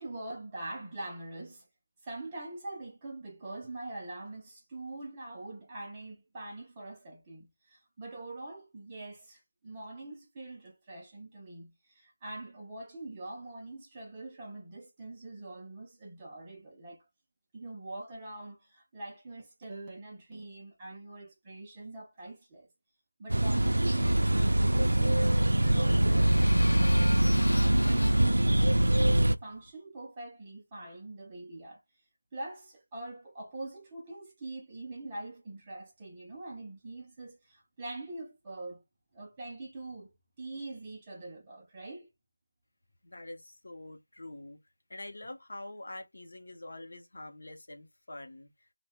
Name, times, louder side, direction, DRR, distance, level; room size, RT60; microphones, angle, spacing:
voice 1, 0.0-1.7 2.0-17.1 17.5-22.7 23.2-31.8 32.3-38.8 39.1-40.1 40.4-42.1, right 2 dB, 10° right, 0.4 m, -44 dB
sound 1, 23.3-29.4, right 1 dB, 85° right, 0.3 m, -24 dB
sound 2, 24.2-29.7, left 1 dB, 80° left, 0.7 m, -41 dB
voice 2, 43.0-44.6 44.9-48.5, left 1 dB, 40° left, 0.7 m, -45 dB
2.6 x 2.0 x 3.5 m
figure-of-eight pair, 180°, 0 cm